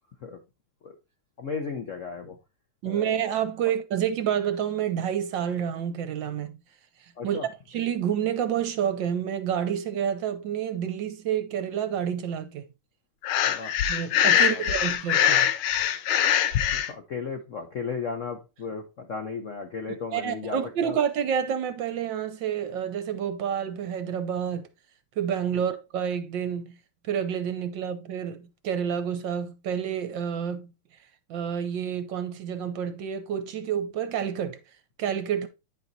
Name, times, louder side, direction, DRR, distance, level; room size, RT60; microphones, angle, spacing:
voice 1, 1.4-2.4 2.8-3.1 7.2-7.5 13.4-13.7 14.3-14.6 16.7-21.0 25.5-25.6, left 5 dB, 60° left, 0.8 m, -35 dB
voice 2, 2.8-6.6 7.2-7.4 7.7-12.7 13.9-15.5 20.1-24.7 25.2-26.7 27.0-30.7 31.3-34.6 35.0-35.5, right 8 dB, 65° right, 1.3 m, -29 dB
Breathing, 13.2-16.9, left 10 dB, 85° left, 1.6 m, -23 dB
9.8 x 4.4 x 3.9 m
omnidirectional pair, 2.4 m